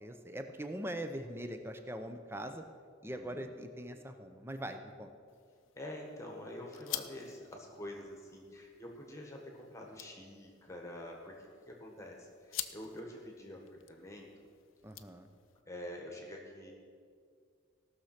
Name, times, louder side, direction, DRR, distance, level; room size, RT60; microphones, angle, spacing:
voice 1, 0.0-2.6 3.0-5.1 14.8-15.3, right 1 dB, 10° right, 7 dB, 0.7 m, -42 dB
voice 2, 3.1-3.6 5.7-14.3 15.7-16.7, left 1 dB, 15° left, 0 dB, 1.4 m, -47 dB
sound 1, 5.3-15.6, left 13 dB, 80° left, 0.6 m, -48 dB
17.5 x 6.5 x 5.9 m, 2.2 s
head